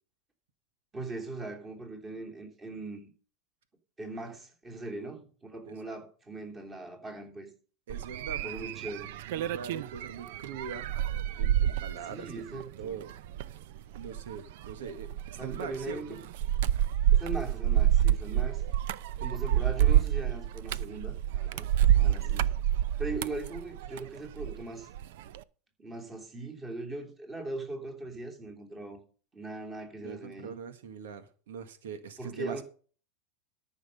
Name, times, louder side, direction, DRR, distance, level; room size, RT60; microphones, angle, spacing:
voice 1, 0.9-3.1 4.0-7.5 8.4-9.2 12.1-13.0 15.4-16.2 17.1-18.6 19.2-22.5 23.0-24.9 25.8-29.0 29.3-30.6 32.2-32.6, right 2 dB, 15° right, 3.2 m, -40 dB
sound 1, 7.9-24.6 24.9-25.4, right 11 dB, 65° right, 0.7 m, -28 dB
voice 2, 7.9-8.8 9.3-10.9 11.4-13.2 13.4-13.6 13.9-16.2 18.3-18.5 22.0-22.5 30.0-32.6, right 6 dB, 90° right, 1.7 m, -42 dB
13.5 x 6.5 x 5.5 m
supercardioid pair, 155°, 0 cm